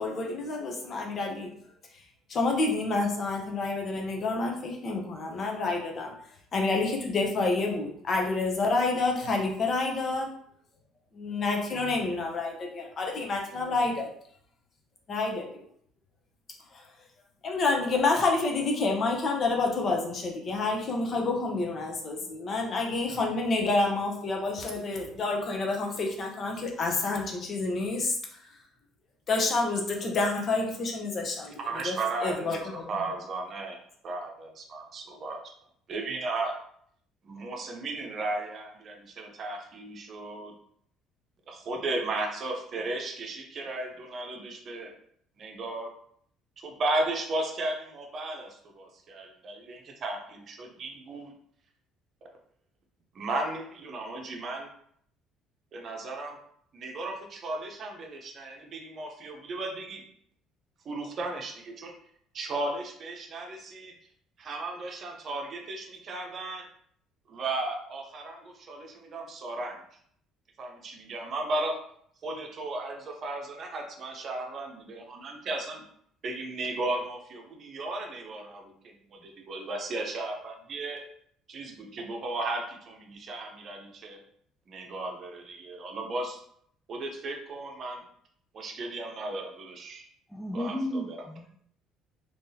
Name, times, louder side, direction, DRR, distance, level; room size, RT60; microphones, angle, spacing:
voice 1, 0.0-1.5 2.3-6.1 6.5-10.3 11.1-14.1 15.1-15.6 16.7-16.8 17.4-28.2 29.3-31.5 31.8-32.0 32.2-32.9, left 3 dB, 45° left, 1 dB, 0.8 m, -28 dB
voice 2, 31.6-32.6 32.9-33.8 34.0-35.4 35.9-36.6 37.2-40.5 41.5-44.9 45.4-45.9 46.6-51.3 53.1-54.7 55.7-56.4 56.7-60.0 60.8-61.9 62.3-63.9 64.4-66.6 67.3-69.8 70.6-71.7 72.2-75.8 76.2-81.0 81.5-84.2 84.7-86.4 86.9-88.0 88.5-90.0 90.5-91.2, right 2 dB, 50° right, 2 dB, 0.8 m, -35 dB
voice 3, 90.3-91.6, equal, 10° left, -1 dB, 0.4 m, -34 dB
3.6 x 3.0 x 2.8 m, 0.65 s
supercardioid pair, 95°, 0 cm